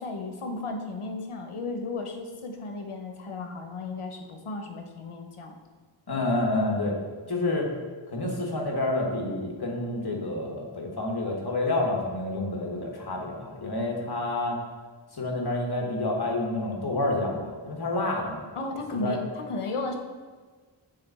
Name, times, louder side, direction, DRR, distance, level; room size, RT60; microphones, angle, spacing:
voice 1, 0.0-5.5 18.6-20.0, left 2 dB, 90° left, 4 dB, 0.8 m, -34 dB
voice 2, 6.1-7.0 7.3-7.7 8.1-14.6 15.1-18.4 19.0-19.2, left 2 dB, 50° left, 0 dB, 1.3 m, -28 dB
6.6 x 3.4 x 4.1 m, 1.4 s
wide cardioid pair, 45°, 49 cm